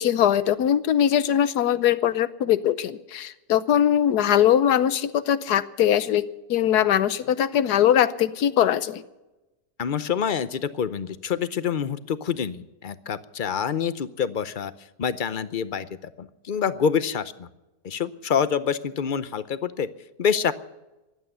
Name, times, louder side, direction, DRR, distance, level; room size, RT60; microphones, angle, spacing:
voice 1, 0.0-9.0, left 10 dB, 90° left, 15 dB, 1.4 m, -21 dB
voice 2, 9.8-17.5 17.8-19.9 20.2-20.5, left 7 dB, 50° left, 14 dB, 0.6 m, -27 dB
15.5 x 11.5 x 8.0 m, 1.0 s
omnidirectional pair, 1.7 m